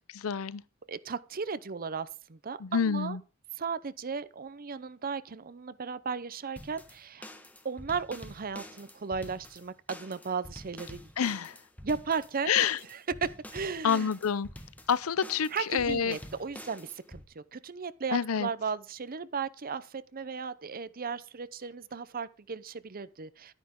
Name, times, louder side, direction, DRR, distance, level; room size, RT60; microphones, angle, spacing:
voice 1, 0.2-0.6 2.6-3.2 11.2-11.6 12.5-12.8 13.8-14.5 14.9-16.2 18.1-18.5, left 7 dB, 75° left, 0.6 m, -28 dB
voice 2, 0.9-3.2 3.6-7.3 7.6-11.1 11.8-14.1 15.5-23.5, right 5 dB, 45° right, 0.7 m, -36 dB
sound 1, 6.6-17.2, left 1 dB, 5° left, 1.4 m, -47 dB
11.5 x 10.0 x 3.7 m
head